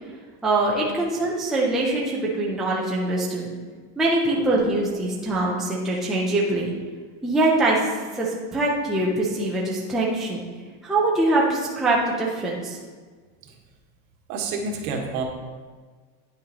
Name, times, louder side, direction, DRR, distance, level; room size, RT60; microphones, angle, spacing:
voice 1, 0.4-3.5 4.0-6.7 7.2-10.4 10.8-12.8, right 2 dB, ahead, -4 dB, 0.5 m, -23 dB
voice 2, 14.3-15.2, right 4 dB, 70° right, 1 dB, 1.5 m, -30 dB
9.8 x 6.4 x 2.9 m, 1.5 s
cardioid pair, 165°, 44 cm